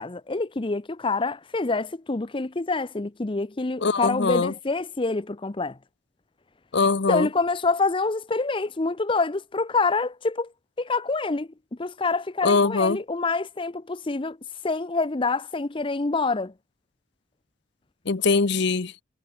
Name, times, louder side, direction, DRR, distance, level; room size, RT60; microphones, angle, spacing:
voice 1, 0.0-5.8 7.1-10.5 10.8-11.5 11.8-14.4 14.6-16.5, left 3 dB, 25° left, 0.6 m, -26 dB
voice 2, 3.8-4.5 6.7-7.3 12.4-13.0 18.1-18.9, left 4 dB, 60° left, 0.8 m, -22 dB
head